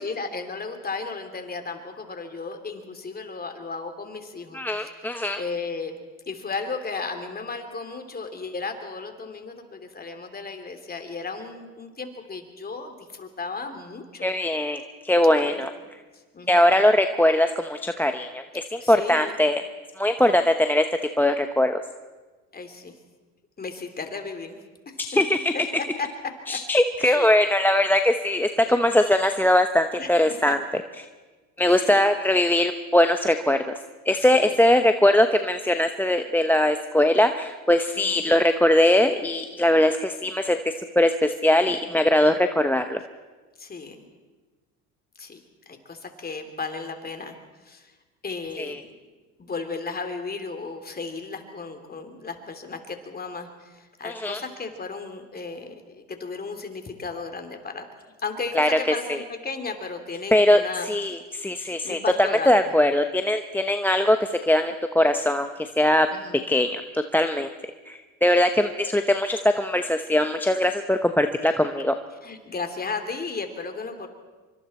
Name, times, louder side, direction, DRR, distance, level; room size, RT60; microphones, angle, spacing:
voice 1, 0.0-5.0 5.4-6.0 6.3-14.3 15.4-15.5 16.1-16.7 18.8-19.3 22.5-22.9 23.6-24.6 24.8-25.0 26.0-26.6 27.0-27.5 28.7-28.9 29.2-29.3 30.0-30.8 31.7-32.0 32.4-32.5 34.2-34.6 37.9-38.3 41.8-42.1 43.6-44.0 45.2-45.4 45.7-47.3 47.6-47.9 48.2-48.9 49.4-57.8 58.2-61.2 61.6-62.7 66.1-66.4 72.2-74.1, left 4 dB, 25° left, 6 dB, 3.1 m, -35 dB
voice 2, 4.5-5.4 14.2-15.7 16.5-19.6 20.0-20.8 21.2-21.8 25.1-25.5 26.5-30.6 31.6-33.8 34.1-43.0 48.6-48.8 54.0-54.4 58.5-58.8 59.1-59.2 60.3-62.0 62.5-66.1 66.5-67.5 67.9-71.9, left 1 dB, 5° left, 8 dB, 0.9 m, -21 dB
25.5 x 24.5 x 4.4 m, 1.3 s
supercardioid pair, 90°, 37 cm